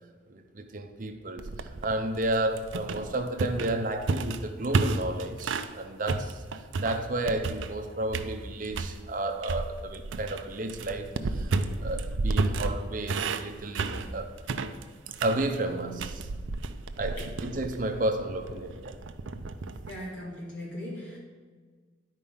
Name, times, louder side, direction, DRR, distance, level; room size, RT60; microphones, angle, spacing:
voice 1, 0.3-6.4 6.8-11.5 11.8-14.3 15.2-16.3 17.0-19.0, right 2 dB, 45° right, 5 dB, 0.7 m, -32 dB
sound 1, 1.4-5.7 6.1-7.8 8.1-9.0 9.4-19.9, right 3 dB, 80° right, 0.5 m, -32 dB
voice 2, 19.8-21.2, left 1 dB, 75° left, -4 dB, 2.8 m, -39 dB
10.0 x 4.5 x 5.6 m, 1.5 s
head